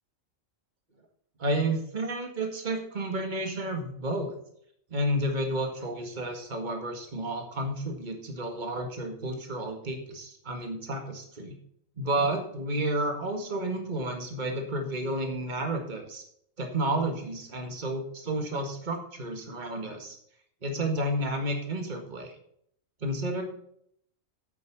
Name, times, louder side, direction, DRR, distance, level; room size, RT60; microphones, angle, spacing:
voice 1, 1.4-4.4 4.9-11.6 12.0-16.2 16.6-20.2 20.6-22.3 23.0-23.4, right 1 dB, 35° right, 4 dB, 1.9 m, -31 dB
8.7 x 8.4 x 5.9 m, 0.67 s
omnidirectional pair, 1.4 m